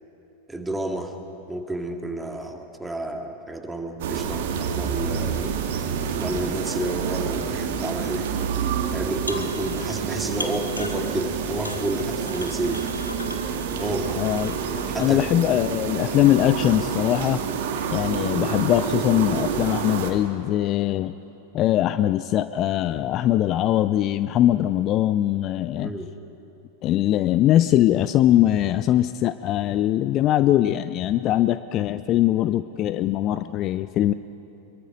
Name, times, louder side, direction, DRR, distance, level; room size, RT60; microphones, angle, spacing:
voice 1, 0.5-1.1 1.5-5.5 6.2-8.3 8.9-12.8 13.8-14.2 14.7-15.2 25.8-26.1, right 1 dB, 5° right, 3 dB, 2.1 m, -30 dB
sound 1, 4.0-20.1, right 7 dB, 55° right, 2.0 m, -28 dB
sound 2, 9.3-10.0 10.4-11.3 11.6-15.1, left 2 dB, 80° left, 1.6 m, -38 dB
voice 2, 14.2-14.6 15.0-17.4 17.9-21.1 21.5-25.9 26.8-34.1, left 13 dB, 35° left, 13 dB, 0.5 m, -21 dB
26.0 x 22.5 x 5.2 m, 2.9 s
figure-of-eight pair, 90°, 0 cm